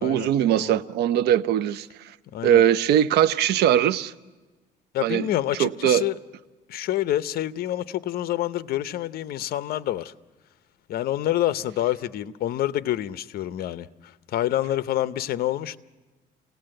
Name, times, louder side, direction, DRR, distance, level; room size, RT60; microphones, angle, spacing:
voice 1, 0.0-1.9 2.4-4.1 5.0-5.3 5.6-6.0, right 10 dB, 75° right, 0.7 m, -20 dB
voice 2, 2.3-2.6 4.9-6.2 6.7-10.1 10.9-15.8, left 13 dB, 65° left, 0.7 m, -27 dB
28.0 x 18.0 x 7.7 m
cardioid pair, 110°, 17 cm